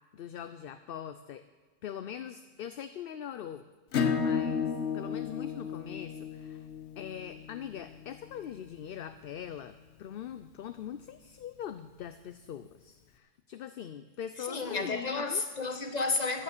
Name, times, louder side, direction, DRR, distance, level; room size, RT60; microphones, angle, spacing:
voice 1, 0.1-1.4 1.8-3.6 4.1-6.7 7.0-15.4, left 9 dB, 60° left, 11 dB, 0.7 m, -42 dB
Acoustic guitar / Strum, 3.9-9.2, left 6 dB, 80° left, 1.2 m, -34 dB
voice 2, 14.4-16.4, left 3 dB, 40° left, 7 dB, 1.3 m, -32 dB
14.0 x 9.6 x 6.7 m, 1.3 s
omnidirectional pair, 1.1 m